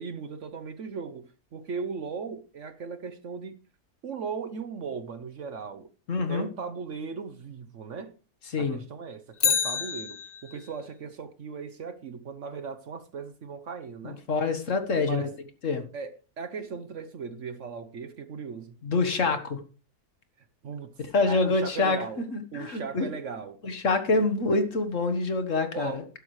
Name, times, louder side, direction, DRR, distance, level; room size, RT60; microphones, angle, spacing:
voice 1, 0.0-3.6 4.0-5.9 6.3-8.1 8.6-14.2 15.0-15.4 15.9-18.8 20.6-20.9 21.3-22.2 22.5-23.6 24.1-24.2 25.7-26.1, right 5 dB, 55° right, 1.1 m, -37 dB
voice 2, 6.1-6.5 8.5-8.8 14.0-15.2 15.6-15.9 18.8-19.6 21.1-23.1 23.6-26.0, left 3 dB, 55° left, 1.7 m, -26 dB
Bicycle, 9.3-10.7 19.1-19.2, left 7 dB, 70° left, 0.4 m, -28 dB
12.5 x 11.5 x 3.2 m
omnidirectional pair, 1.7 m